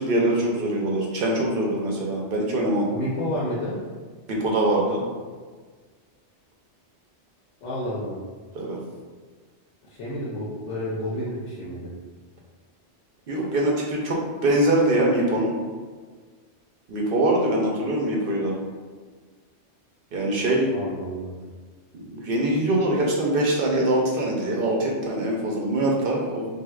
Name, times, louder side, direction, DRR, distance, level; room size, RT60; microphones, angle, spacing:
voice 1, 0.0-2.8 4.3-5.0 8.5-8.8 13.3-15.5 16.9-18.5 20.1-20.7 21.9-26.5, right 1 dB, 60° right, -2 dB, 0.7 m, -23 dB
voice 2, 2.9-3.8 7.6-8.1 9.8-11.9 20.7-21.3, equal, 85° left, -8 dB, 1.0 m, -30 dB
3.5 x 2.7 x 2.3 m, 1.5 s
omnidirectional pair, 1.2 m